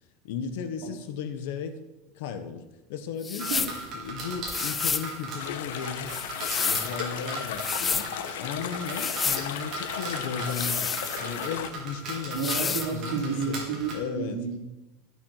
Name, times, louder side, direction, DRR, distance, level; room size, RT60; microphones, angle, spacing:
voice 1, 0.2-1.8 2.1-6.1 6.6-8.1 8.4-10.9 11.2-13.6 13.9-14.4, left 6 dB, 60° left, 8 dB, 1.4 m, -35 dB
sound 1, 3.2-3.8 4.5-5.1 6.1-6.9 7.5-8.1 8.9-9.5 10.4-11.5 12.3-12.9, left 5 dB, 15° left, 0.4 m, -30 dB
sound 2, 3.4-13.9, right 2 dB, 30° right, 3.6 m, -38 dB
sound 3, 5.4-11.7, left 9 dB, 80° left, 1.2 m, -35 dB
voice 2, 12.3-14.6, right 5 dB, 65° right, 0 dB, 3.8 m, -31 dB
15.0 x 7.1 x 6.7 m, 0.99 s
supercardioid pair, 175°, 0 cm